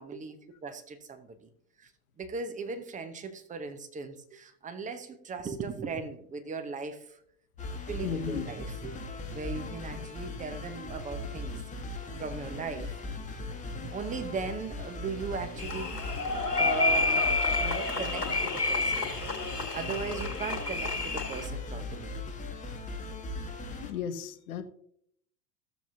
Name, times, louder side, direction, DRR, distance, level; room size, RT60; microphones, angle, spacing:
voice 1, 0.0-1.5 1.8-1.9 2.2-7.2 7.9-9.0 9.3-11.6 12.2-13.0 13.9-16.0 16.6-17.3 17.6-19.1 19.7-22.2, right 5 dB, 15° right, 9 dB, 1.0 m, -38 dB
sound 1, 7.6-23.9, left 2 dB, 15° left, 1.4 m, -39 dB
voice 2, 8.0-8.4 23.8-24.6, left 8 dB, 60° left, 8 dB, 1.1 m, -34 dB
sound 2, 15.6-21.5, left 3 dB, 90° left, 2.1 m, -29 dB
15.0 x 7.2 x 2.8 m, 0.68 s
figure-of-eight pair, 85°, 47 cm